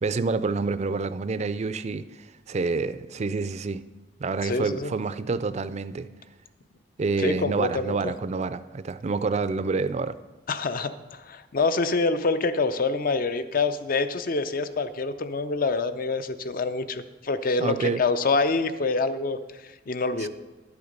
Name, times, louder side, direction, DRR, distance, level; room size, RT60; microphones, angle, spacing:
voice 1, 0.0-3.8 4.2-6.1 7.0-10.1 17.6-18.0 20.2-20.3, right 4 dB, 40° right, 14 dB, 0.4 m, -28 dB
voice 2, 4.4-4.9 7.2-8.1 10.5-20.3, left 3 dB, 50° left, 11 dB, 0.6 m, -26 dB
11.5 x 7.0 x 5.1 m, 1.2 s
head